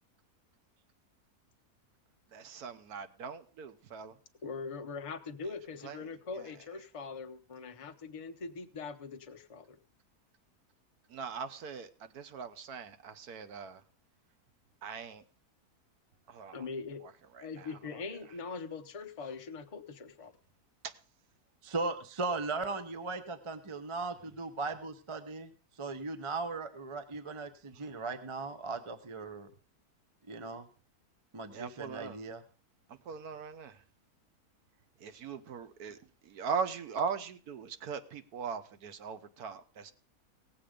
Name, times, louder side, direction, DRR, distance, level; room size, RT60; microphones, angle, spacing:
voice 1, 2.3-4.1 5.8-6.0 6.4-6.5 11.1-13.8 14.8-15.2 16.3-16.6 17.0-17.1 17.4-18.0 20.8-20.9 31.5-32.2 33.0-33.8 35.0-36.0 36.2-39.9, right 6 dB, 80° right, 11 dB, 1.4 m, -40 dB
voice 2, 4.4-9.8 16.5-17.0 17.4-20.3, left 4 dB, 30° left, 5 dB, 0.7 m, -42 dB
voice 3, 21.6-25.5 25.8-29.5 30.3-30.7 31.3-32.4, right 3 dB, 25° right, 10 dB, 0.7 m, -38 dB
17.5 x 7.7 x 5.0 m, 0.39 s
omnidirectional pair, 1.6 m